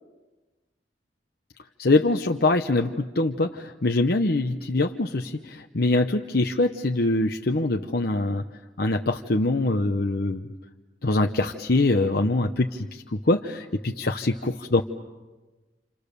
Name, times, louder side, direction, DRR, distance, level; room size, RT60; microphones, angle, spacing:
voice 1, 1.8-8.4 8.8-10.5 11.0-14.8, left 2 dB, 60° left, 3 dB, 1.0 m, -24 dB
29.5 x 28.0 x 6.8 m, 1.2 s
head